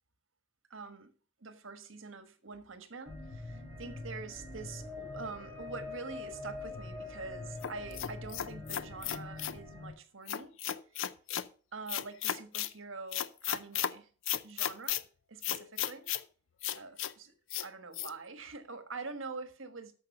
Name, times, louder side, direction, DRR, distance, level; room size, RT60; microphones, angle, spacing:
voice 1, 0.7-1.1 1.4-10.6 11.7-14.1 14.4-15.0 15.3-16.1 16.7-17.3 17.6-19.9, right 4 dB, 65° right, 1.4 m, -45 dB
sound 1, 3.1-9.9, left 3 dB, 5° left, 4.1 m, -44 dB
sound 2, 7.6-9.6 10.3-11.5 11.9-12.7 13.1-13.9 14.3-15.0 15.4-16.2 16.6-17.1 17.5-17.7 17.9-18.1, left 11 dB, 65° left, 0.5 m, -34 dB
13.5 x 5.3 x 5.4 m
head